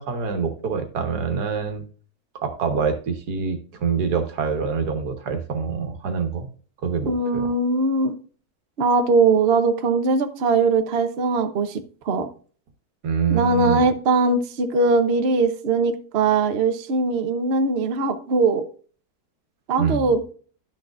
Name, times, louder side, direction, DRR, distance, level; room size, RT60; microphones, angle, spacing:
voice 1, 0.0-1.9 2.4-6.5 6.8-7.5 13.0-13.8 19.8-20.1, right 6 dB, 85° right, 7 dB, 1.8 m, -25 dB
voice 2, 7.1-8.1 8.8-12.3 13.3-18.6 19.7-20.2, right 3 dB, 50° right, 8 dB, 0.9 m, -21 dB
12.0 x 6.4 x 2.4 m, 0.42 s
omnidirectional pair, 1.6 m